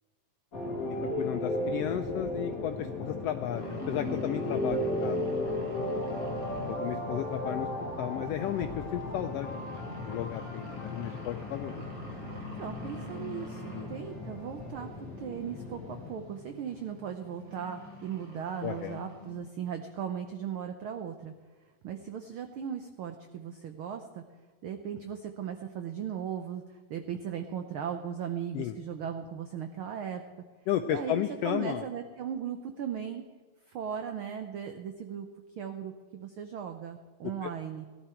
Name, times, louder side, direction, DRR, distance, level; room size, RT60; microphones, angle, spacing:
sound 1, 0.5-16.1, left 1 dB, 35° left, 1.7 m, -35 dB
voice 1, 1.2-5.9 6.7-7.7 8.0-9.8 10.0-11.8 13.7-13.9 18.6-19.0 28.5-28.7 30.7-31.9 37.2-37.5, left 11 dB, 85° left, 8 dB, 1.4 m, -34 dB
sound 2, 3.5-19.3, equal, 25° right, 4.6 m, -46 dB
voice 2, 12.3-21.3 21.8-24.2 24.6-30.2 30.9-33.2 33.7-35.3 35.6-37.9, right 8 dB, 85° right, 6 dB, 1.1 m, -37 dB
18.0 x 11.5 x 4.4 m, 1.4 s
omnidirectional pair, 3.4 m